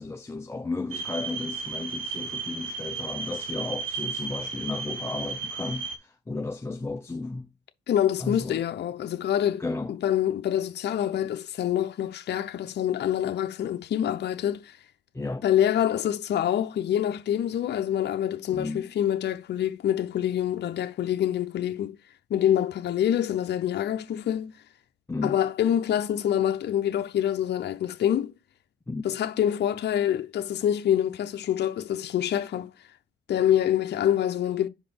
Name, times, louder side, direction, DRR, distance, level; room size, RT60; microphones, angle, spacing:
voice 1, 0.0-7.5 8.2-8.6 9.6-9.9 15.1-15.4 18.5-18.9 25.1-25.3 28.9-29.1, left 3 dB, 15° left, 0.5 m, -34 dB
sound 1, 0.9-6.0, right 4 dB, 85° right, 1.3 m, -34 dB
voice 2, 7.9-9.6 9.9-14.8 15.4-22.0 22.3-24.5 25.2-28.3 29.0-32.7 33.3-34.7, left 10 dB, 60° left, 0.7 m, -26 dB
4.9 x 4.4 x 5.3 m
cardioid pair, 90°, 20 cm